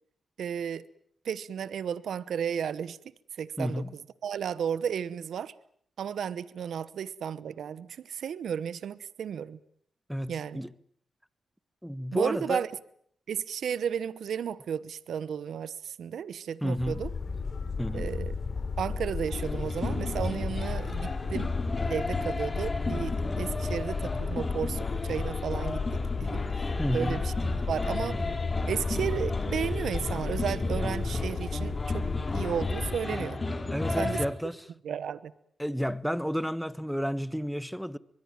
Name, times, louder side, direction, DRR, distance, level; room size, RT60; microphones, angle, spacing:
voice 1, 0.4-0.8 1.2-3.0 3.4-3.8 4.2-5.5 6.0-9.6 10.3-10.6 12.1-12.7 13.3-17.1 17.9-18.4 18.8-21.5 21.9-25.8 26.2-27.3 27.7-28.2 28.7-32.0 32.3-33.4 34.0-34.2 34.8-35.3, right 8 dB, 80° right, 1.0 m, -33 dB
voice 2, 3.6-3.9 10.1-10.7 11.8-12.7 16.6-17.0 17.8-18.1 26.8-27.2 33.7-34.6 35.6-38.0, equal, ahead, 1.3 m, -31 dB
sound 1, 16.8-33.0, left 5 dB, 60° left, 4.2 m, -34 dB
sound 2, 19.3-34.3, left 2 dB, 35° left, 4.6 m, -33 dB
24.0 x 21.5 x 9.1 m
cardioid pair, 55°, 0 cm